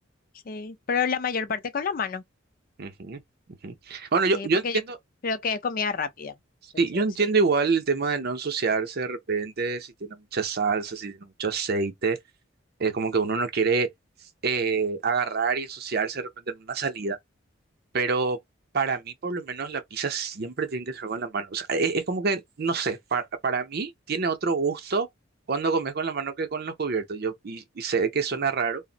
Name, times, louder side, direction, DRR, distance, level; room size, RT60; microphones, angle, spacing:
voice 1, 0.5-2.2 4.3-4.8 5.2-6.3, left 5 dB, 45° left, 0.4 m, -28 dB
voice 2, 2.8-3.2 3.6-5.0 6.8-12.2 12.8-13.9 14.4-17.2 17.9-18.4 18.7-25.1 25.5-28.8, right 4 dB, 50° right, 0.6 m, -27 dB
2.5 x 2.0 x 3.8 m
head